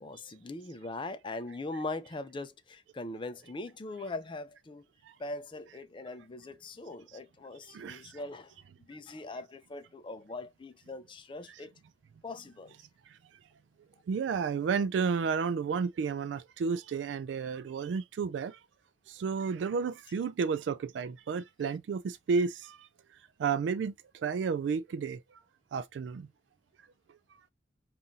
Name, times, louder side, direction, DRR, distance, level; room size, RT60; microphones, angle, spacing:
voice 1, 0.0-4.8 5.2-8.5 8.8-11.7 12.2-12.8, left 2 dB, 30° left, 0.5 m, -41 dB
voice 2, 7.7-8.2 11.5-11.6 14.1-18.6 19.1-22.9 23.4-25.2 25.7-26.3, right 5 dB, 75° right, 0.3 m, -32 dB
5.4 x 2.5 x 2.6 m
head